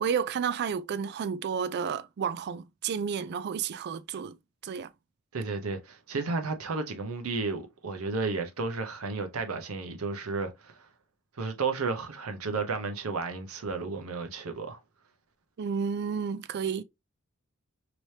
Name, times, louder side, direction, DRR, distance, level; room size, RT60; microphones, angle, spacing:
voice 1, 0.0-4.4 4.6-4.9 15.6-16.8, right 6 dB, 50° right, 0.3 m, -31 dB
voice 2, 5.3-10.8 11.4-14.8, right 4 dB, 80° right, 0.8 m, -32 dB
3.2 x 3.0 x 2.7 m
head